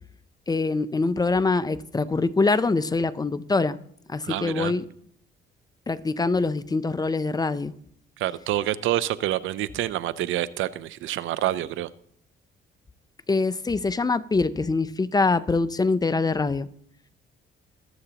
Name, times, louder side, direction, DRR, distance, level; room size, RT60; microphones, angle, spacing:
voice 1, 0.5-3.8 4.1-4.8 5.9-7.7 13.3-16.7, left 3 dB, 20° left, 0.5 m, -24 dB
voice 2, 4.2-4.7 8.2-11.9, right 13 dB, 80° right, 0.6 m, -27 dB
23.0 x 7.9 x 2.9 m
cardioid pair, 90°, 20 cm